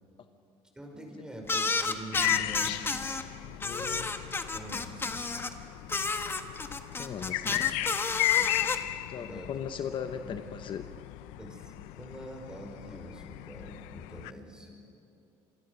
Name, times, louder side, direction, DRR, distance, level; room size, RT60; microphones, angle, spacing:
voice 1, 0.8-2.7 4.5-5.3 8.3-8.7 9.1-9.5 9.9-10.4 11.4-14.7, right 1 dB, 5° right, 1 dB, 5.4 m, -45 dB
sound 1, 1.5-3.2 3.6-5.5 5.9-8.8, left 3 dB, 20° left, 1.4 m, -31 dB
sound 2, 2.1-14.3, left 17 dB, 90° left, 0.6 m, -35 dB
voice 2, 3.6-4.1 6.9-7.8 9.1-10.9, left 7 dB, 45° left, 8 dB, 1.0 m, -38 dB
27.5 x 23.0 x 6.5 m, 2.7 s
cardioid pair, 115°, 12 cm